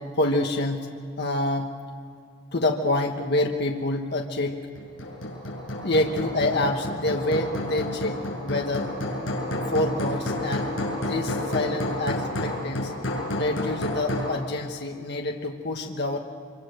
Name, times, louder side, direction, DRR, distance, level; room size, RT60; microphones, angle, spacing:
voice 1, 0.1-0.9 1.2-1.7 2.5-4.6 5.8-8.9 9.7-10.7 10.9-12.9 13.4-16.2, left 2 dB, 60° left, 2 dB, 1.4 m, -27 dB
Hammer, 4.8-14.4, left 1 dB, 90° left, 6.8 m, -30 dB
Bowed string instrument, 8.5-13.3, equal, 60° right, 2.5 m, -39 dB
25.0 x 24.0 x 6.8 m, 2.3 s
head